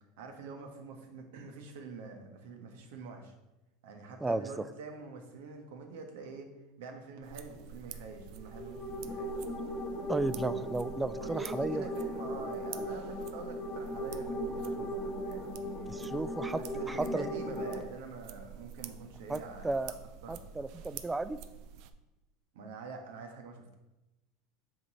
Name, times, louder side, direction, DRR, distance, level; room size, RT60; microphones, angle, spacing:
voice 1, 0.2-3.3 3.8-6.5 6.8-9.3 11.2-16.2 16.6-19.9 20.2-20.4 22.5-23.8, right 3 dB, 80° right, 4 dB, 1.4 m, -46 dB
sound 1, 7.2-21.9, right 8 dB, 60° right, 0.5 m, -48 dB
sound 2, 8.4-17.8, equal, 30° left, 1.0 m, -38 dB
voice 2, 10.1-11.8 15.9-16.6 16.9-17.2 19.3-19.9 20.3-21.4, right 2 dB, 10° right, 14 dB, 0.4 m, -34 dB
7.6 x 3.9 x 5.5 m, 0.99 s
supercardioid pair, 115°, 0 cm